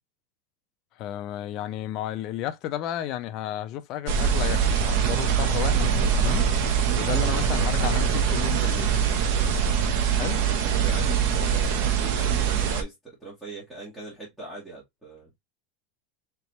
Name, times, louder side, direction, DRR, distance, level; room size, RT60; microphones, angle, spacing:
voice 1, 1.0-6.5 6.9-8.9 10.2-10.4, left 12 dB, 40° left, 0.6 m, -33 dB
sound 1, 4.1-12.8, right 7 dB, 55° right, 0.9 m, -23 dB
voice 2, 10.3-12.9 13.2-15.4, right 3 dB, 5° right, 1.9 m, -41 dB
4.0 x 3.4 x 2.8 m
supercardioid pair, 160°, 0 cm